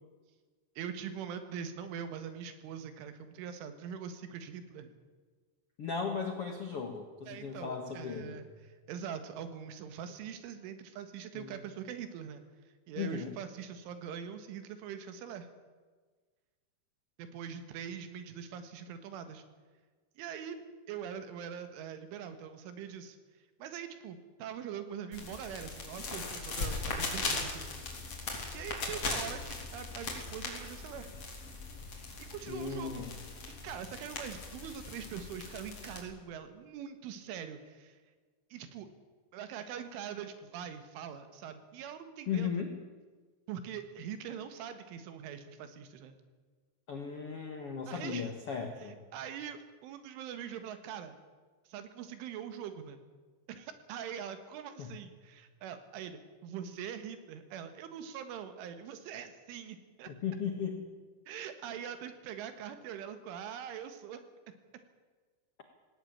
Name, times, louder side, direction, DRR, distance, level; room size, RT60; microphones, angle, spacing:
voice 1, 0.8-4.9 7.3-12.4 12.9-15.5 17.2-19.4 20.2-20.6 20.9-23.2 23.6-27.7 28.0-28.3 28.5-31.1 32.2-33.0 33.6-38.0 38.5-38.9 39.3-42.6 43.5-46.2 47.9-48.3 48.8-51.2 51.7-53.0 53.5-60.1 61.3-64.2, right 8 dB, 85° right, 9 dB, 4.1 m, -43 dB
voice 2, 5.8-8.4 11.3-11.5 12.9-13.3 32.5-33.2 42.3-42.8 46.9-49.0 54.8-54.9 60.1-60.9, left 6 dB, 75° left, 4 dB, 1.3 m, -36 dB
sound 1, 25.1-36.0, left 3 dB, 35° left, 4.3 m, -39 dB
18.0 x 18.0 x 8.8 m, 1.4 s
omnidirectional pair, 5.5 m